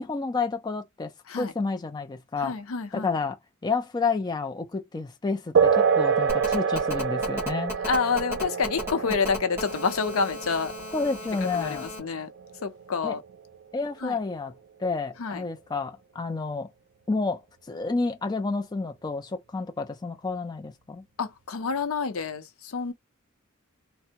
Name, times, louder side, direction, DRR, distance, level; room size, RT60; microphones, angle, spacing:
voice 1, 0.0-2.6 2.9-3.4 3.6-7.8 9.0-9.2 10.9-11.9 13.0-13.2 13.7-14.5 14.8-16.7 17.1-21.0, left 4 dB, 20° left, 0.4 m, -30 dB
voice 2, 2.4-3.1 7.8-10.7 11.5-12.3 12.6-13.2 14.0-14.2 15.2-15.4 21.2-22.9, left 5 dB, 75° left, 0.6 m, -28 dB
sound 1, 5.5-13.6, right 6 dB, 55° right, 0.4 m, -27 dB
Telephone, 6.3-12.0, left 1 dB, 10° right, 1.7 m, -36 dB
3.3 x 2.1 x 2.8 m
head